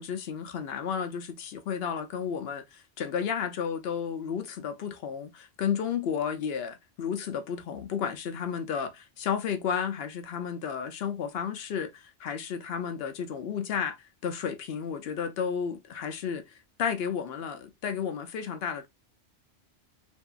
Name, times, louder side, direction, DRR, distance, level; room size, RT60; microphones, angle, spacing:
voice 1, 0.0-16.5 16.8-18.9, left 7 dB, 65° left, 0.7 m, -32 dB
2.8 x 2.5 x 2.3 m
omnidirectional pair, 1.2 m